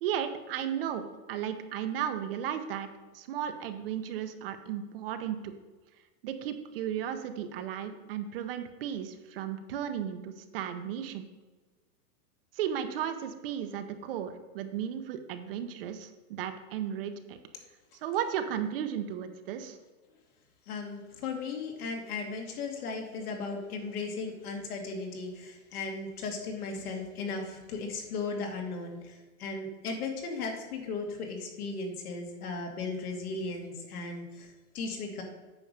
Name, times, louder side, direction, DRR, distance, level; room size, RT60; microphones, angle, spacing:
voice 1, 0.0-2.9 3.1-5.5 6.2-11.3 12.5-17.4 18.0-19.8, right 9 dB, 40° right, 8 dB, 0.7 m, -35 dB
voice 2, 20.7-35.2, left 4 dB, 70° left, 2 dB, 2.4 m, -36 dB
8.9 x 5.4 x 6.5 m, 1.3 s
supercardioid pair, 160°, 46 cm